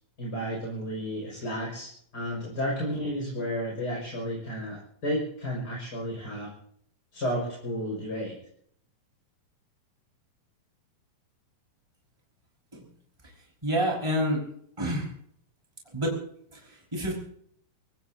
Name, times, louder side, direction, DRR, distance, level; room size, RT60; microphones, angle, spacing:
voice 1, 0.2-6.5 7.1-8.4, equal, 25° left, -3 dB, 6.4 m, -32 dB
voice 2, 13.6-14.4 14.8-15.1 15.9-16.2 16.5-17.1, equal, 10° right, -1 dB, 5.4 m, -28 dB
29.0 x 17.0 x 2.9 m, 0.66 s
omnidirectional pair, 3.8 m